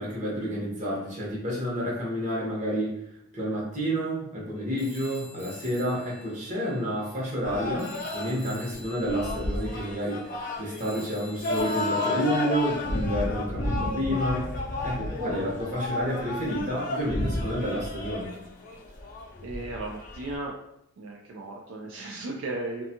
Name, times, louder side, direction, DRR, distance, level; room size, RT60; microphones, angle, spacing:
voice 1, 0.0-3.0 3.3-14.5 14.8-18.3, equal, 40° right, -5 dB, 0.9 m, -30 dB
Telephone, 4.8-7.5 7.8-13.0, left 1 dB, ahead, 0.7 m, -48 dB
sound 1, 7.4-20.4, left 2 dB, 40° left, 0.5 m, -32 dB
voice 2, 19.4-20.5 21.0-22.8, right 2 dB, 70° right, -1 dB, 0.3 m, -35 dB
2.5 x 2.3 x 2.7 m, 0.78 s
head